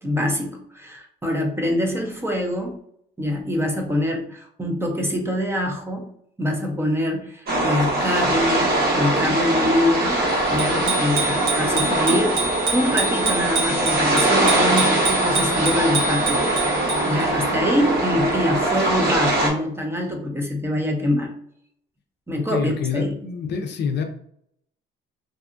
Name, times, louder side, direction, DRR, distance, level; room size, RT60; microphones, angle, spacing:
voice 1, 0.0-2.8 3.2-6.1 6.4-10.2 10.5-16.4 17.0-21.3 22.3-23.2, left 1 dB, 10° right, 1 dB, 0.6 m, -24 dB
sound 1, 7.5-19.5, right 1 dB, 50° right, 1.2 m, -22 dB
Bicycle bell, 10.6-17.2, right 3 dB, 80° right, 1.1 m, -27 dB
voice 2, 22.3-24.0, left 6 dB, 55° left, 4 dB, 0.5 m, -26 dB
2.7 x 2.3 x 2.5 m, 0.68 s
cardioid pair, 100°, 21 cm